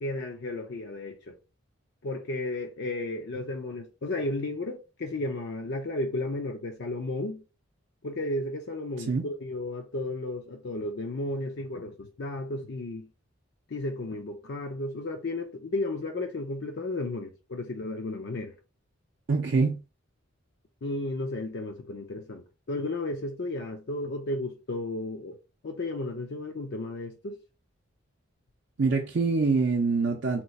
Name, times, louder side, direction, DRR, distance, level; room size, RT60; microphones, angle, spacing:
voice 1, 0.0-1.4 2.0-7.4 8.0-13.1 13.7-18.5 20.8-25.3 25.6-27.4, left 2 dB, 55° left, 0.5 m, -33 dB
voice 2, 19.3-19.8 28.8-30.4, right 4 dB, 60° right, 0.5 m, -25 dB
2.9 x 2.3 x 4.0 m
head